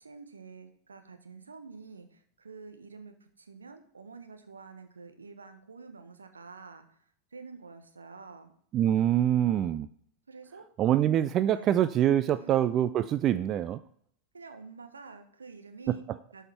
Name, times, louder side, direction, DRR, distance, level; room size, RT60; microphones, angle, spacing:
voice 1, 0.0-7.0 7.3-8.5 10.3-10.7 11.5-11.8 12.2-12.6 14.3-16.0 16.3-16.5, right 4 dB, 75° right, 7 dB, 1.2 m, -48 dB
voice 2, 8.7-9.9 10.8-13.8 15.9-16.2, right 11 dB, 30° right, 14 dB, 0.4 m, -25 dB
11.5 x 5.7 x 4.6 m, 0.63 s
figure-of-eight pair, 90°, 0 cm